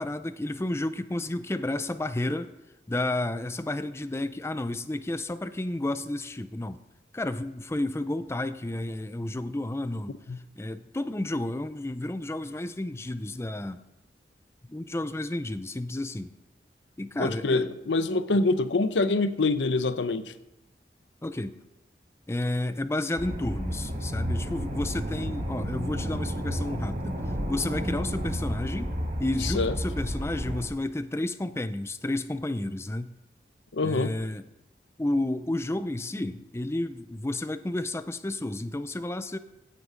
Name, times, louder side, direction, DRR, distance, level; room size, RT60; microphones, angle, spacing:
voice 1, 0.0-2.5 2.9-6.8 7.1-10.2 10.6-13.8 14.7-16.3 17.0-17.7 21.2-21.6 22.3-27.2 27.5-28.9 29.2-33.1 33.8-34.4 35.0-39.4, left 1 dB, 15° left, 0.5 m, -31 dB
voice 2, 17.2-20.3 29.4-29.7 33.7-34.1, left 3 dB, 85° left, 0.7 m, -25 dB
sound 1, 23.2-30.7, equal, 50° right, 2.0 m, -31 dB
16.5 x 6.7 x 5.1 m
head